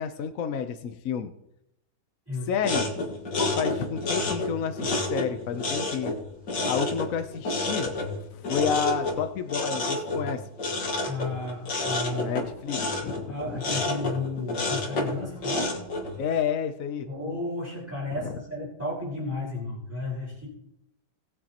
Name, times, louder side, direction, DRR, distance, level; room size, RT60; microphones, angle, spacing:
voice 1, 0.0-1.3 2.5-2.9 3.4-6.1 6.7-7.9 8.4-10.4 12.2-13.6 16.2-17.1 18.2-18.3, left 7 dB, 60° left, 7 dB, 1.0 m, -30 dB
sound 1, 2.6-16.2, left 2 dB, 80° left, 2.4 m, -30 dB
voice 2, 11.0-12.3 13.3-15.8 17.1-20.5, left 2 dB, 10° right, -5 dB, 4.6 m, -33 dB
20.5 x 7.5 x 2.9 m, 0.79 s
omnidirectional pair, 1.8 m